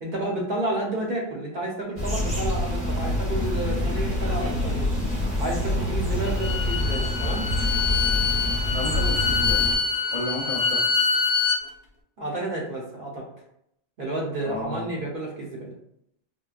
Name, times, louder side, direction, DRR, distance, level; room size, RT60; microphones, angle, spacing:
voice 1, 0.0-4.9 5.4-7.5 12.2-13.3 14.0-15.7, right 1 dB, 55° right, -1 dB, 0.8 m, -30 dB
sound 1, 2.0-9.8, left 1 dB, 10° left, 1.2 m, -26 dB
Bowed string instrument, 6.2-11.6, left 5 dB, 65° left, 0.9 m, -25 dB
voice 2, 8.7-9.7 10.1-10.8 14.4-15.1, left 1 dB, 40° left, -6 dB, 0.5 m, -32 dB
4.5 x 2.2 x 2.3 m, 0.77 s
omnidirectional pair, 1.2 m